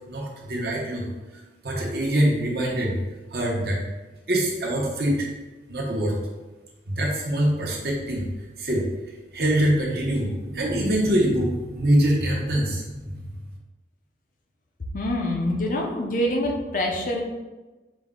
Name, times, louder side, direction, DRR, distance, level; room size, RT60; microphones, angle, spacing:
voice 1, 0.1-1.0 1.6-3.0 3.3-3.8 4.3-5.3 5.7-6.2 6.9-8.3 8.6-8.9 9.3-13.3, right 1 dB, 60° right, -2 dB, 0.9 m, -24 dB
voice 2, 14.9-17.2, left 1 dB, 45° left, 0 dB, 0.5 m, -25 dB
5.1 x 2.1 x 3.6 m, 1.2 s
head